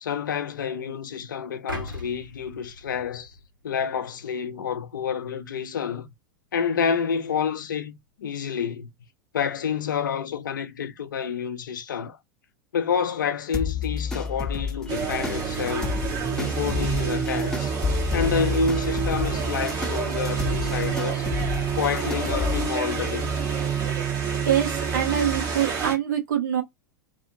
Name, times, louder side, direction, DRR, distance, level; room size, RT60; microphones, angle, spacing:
voice 1, 0.0-3.3 3.6-6.1 6.5-8.9 9.3-12.2 12.7-16.0 16.3-17.8 18.1-21.3 21.8-23.3, left 7 dB, 70° left, 0.6 m, -29 dB
sound 1, 1.7-3.8 4.3-4.5, left 1 dB, 85° right, 1.2 m, -39 dB
sound 2, 13.5-22.7, left 5 dB, 5° left, 0.8 m, -31 dB
sound 3, 14.9-25.9, right 6 dB, 40° right, 1.1 m, -28 dB
voice 2, 24.4-26.6, right 10 dB, 65° right, 0.9 m, -24 dB
2.6 x 2.4 x 2.7 m
figure-of-eight pair, 90°, 11 cm